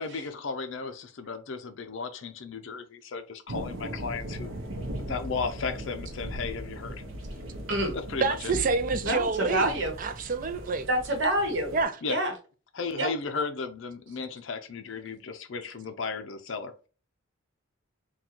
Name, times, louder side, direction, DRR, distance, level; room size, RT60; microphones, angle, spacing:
voice 1, 0.0-4.5 5.0-7.0 7.9-8.5 12.0-12.2 12.7-16.9, left 4 dB, 65° left, 0.5 m, -35 dB
sound 1, 3.5-11.8, right 1 dB, 85° right, 0.7 m, -39 dB
voice 2, 8.2-9.7 10.0-10.9 11.7-11.9, right 4 dB, 40° right, 0.4 m, -27 dB
voice 3, 9.0-9.9 10.9-11.8 12.1-12.3 13.0-13.1, right 1 dB, 65° right, 1.1 m, -27 dB
3.8 x 2.3 x 4.3 m
head